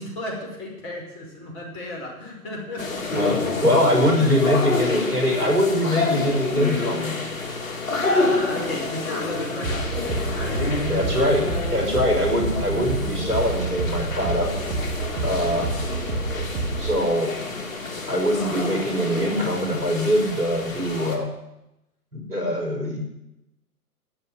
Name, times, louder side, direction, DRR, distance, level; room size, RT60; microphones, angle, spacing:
voice 1, 0.0-3.0 4.1-4.6 5.0-5.1 8.0-11.3 15.4-15.6, left 1 dB, 25° left, -1 dB, 5.3 m, -34 dB
sound 1, 2.8-21.2, left 3 dB, 60° left, 2.8 m, -28 dB
voice 2, 3.1-7.2 10.9-14.5 15.2-15.7 16.8-17.6 18.1-21.3 22.1-23.0, left 1 dB, 80° right, 0 dB, 5.7 m, -23 dB
sound 2, 9.6-17.0, right 3 dB, 60° right, 2.5 m, -29 dB
12.0 x 7.6 x 9.2 m, 0.90 s
figure-of-eight pair, 125°, 46 cm